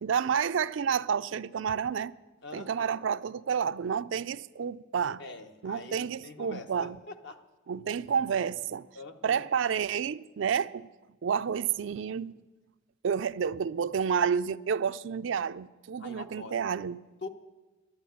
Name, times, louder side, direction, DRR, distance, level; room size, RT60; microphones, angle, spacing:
voice 1, 0.0-2.1 2.5-5.2 5.6-7.0 7.7-8.9 9.2-10.9 11.2-12.4 13.0-17.0, right 7 dB, 65° right, 0.4 m, -30 dB
voice 2, 2.4-3.0 5.2-7.4 8.9-9.5 16.0-16.6 17.2-17.3, left 3 dB, 60° left, 1.0 m, -44 dB
11.5 x 11.0 x 9.3 m
head